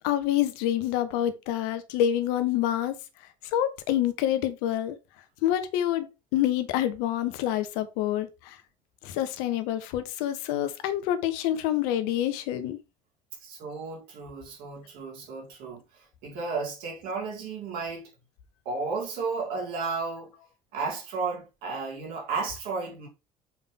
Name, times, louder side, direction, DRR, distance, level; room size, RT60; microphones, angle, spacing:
voice 1, 0.0-2.9 3.5-5.0 5.4-8.6 9.0-12.8, left 11 dB, 60° left, 1.2 m, -27 dB
voice 2, 13.4-18.1 18.7-20.3 20.7-23.1, right 4 dB, 60° right, 3.8 m, -33 dB
7.1 x 5.4 x 3.5 m
figure-of-eight pair, 60°, 18 cm